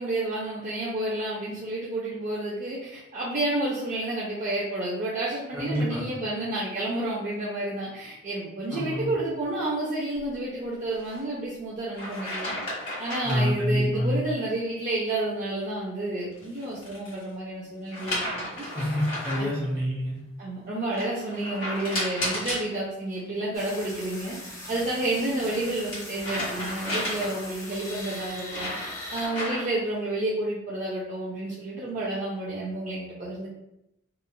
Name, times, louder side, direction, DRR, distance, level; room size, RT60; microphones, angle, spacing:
voice 1, 0.0-12.5 13.0-18.6 19.3-19.5 20.4-24.4 24.7-28.7 29.1-33.5, right 2 dB, 40° right, -6 dB, 0.4 m, -30 dB
voice 2, 5.5-6.0 8.7-9.1 13.2-14.2 18.7-20.2, equal, 10° right, -8 dB, 1.0 m, -27 dB
sound 1, 10.9-11.2 11.9-13.5 16.3-17.2 17.9-19.6 20.9-22.7 24.8-27.6 28.1-29.8, left 1 dB, 40° left, 1.3 m, -33 dB
sound 2, 23.5-29.3, left 1 dB, 15° left, 0.6 m, -40 dB
3.0 x 2.3 x 2.3 m, 0.86 s
head